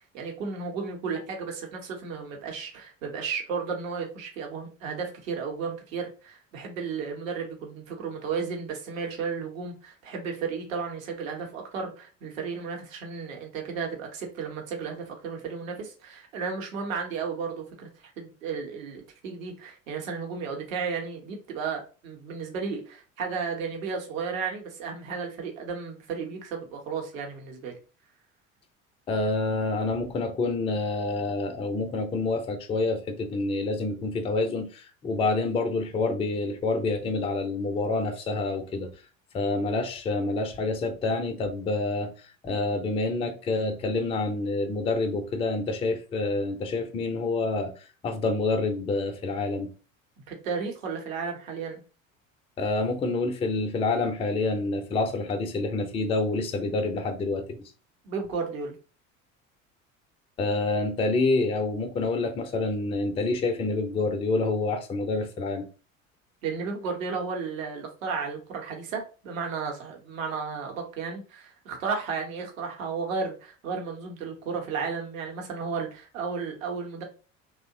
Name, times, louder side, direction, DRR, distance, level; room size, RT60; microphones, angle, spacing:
voice 1, 0.0-27.8 50.3-51.8 58.0-58.8 66.4-77.0, right 5 dB, 70° right, 0.9 m, -33 dB
voice 2, 29.1-38.9 39.3-42.1 42.4-49.7 52.6-57.6 60.4-65.7, left 3 dB, 15° left, 0.4 m, -27 dB
2.8 x 2.1 x 2.6 m
figure-of-eight pair, 65°, 40 cm